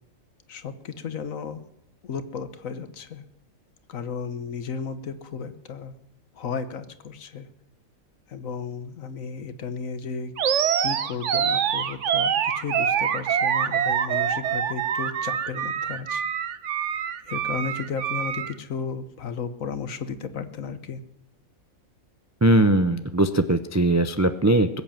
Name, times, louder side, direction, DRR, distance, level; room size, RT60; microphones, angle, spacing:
voice 1, 0.5-1.6 2.0-3.2 3.9-6.0 6.4-7.5 8.3-10.3 10.8-16.2 17.3-21.0, left 5 dB, 70° left, 11 dB, 1.5 m, -34 dB
Animal, 10.4-18.5, right 8 dB, 65° right, 1.1 m, -25 dB
voice 2, 22.4-24.7, right 1 dB, 25° right, 10 dB, 0.3 m, -20 dB
21.0 x 8.4 x 7.4 m, 0.84 s
omnidirectional pair, 1.5 m